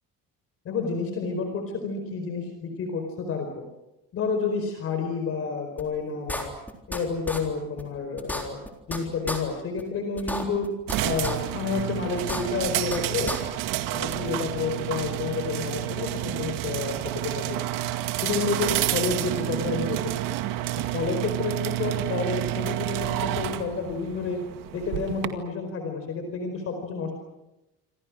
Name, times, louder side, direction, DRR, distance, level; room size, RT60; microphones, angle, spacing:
voice 1, 0.6-3.5 4.1-6.5 6.9-8.6 8.9-10.7 11.0-13.3 13.9-17.0 17.2-17.6 18.2-20.3 20.9-24.4 24.7-27.1, left 4 dB, 40° left, 5 dB, 4.7 m, -30 dB
sound 1, 5.8-5.9 6.3-7.0 7.3-7.4 7.8-7.9 8.2-9.0 9.3-9.4 9.8-9.9 10.2-11.0 11.2-11.3 11.8-11.9 12.2-13.0 13.3-13.4, left 1 dB, 5° left, 3.7 m, -31 dB
sound 2, 10.9-25.3, right 14 dB, 70° right, 2.2 m, -29 dB
27.5 x 27.0 x 6.3 m, 0.95 s
cardioid pair, 175°, 34 cm